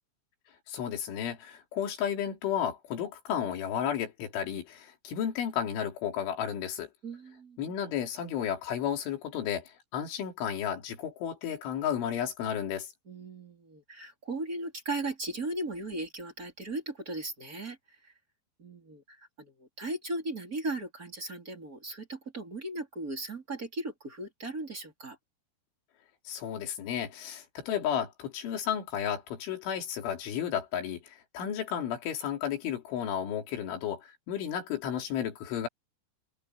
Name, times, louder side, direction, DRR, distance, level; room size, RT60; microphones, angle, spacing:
voice 1, 0.7-6.9 7.6-12.9 26.3-35.7, left 9 dB, 70° left, 5.5 m, -33 dB
voice 2, 7.0-7.7 13.1-18.1 18.6-25.2, right 2 dB, 20° right, 3.6 m, -37 dB
omnidirectional pair, 5.7 m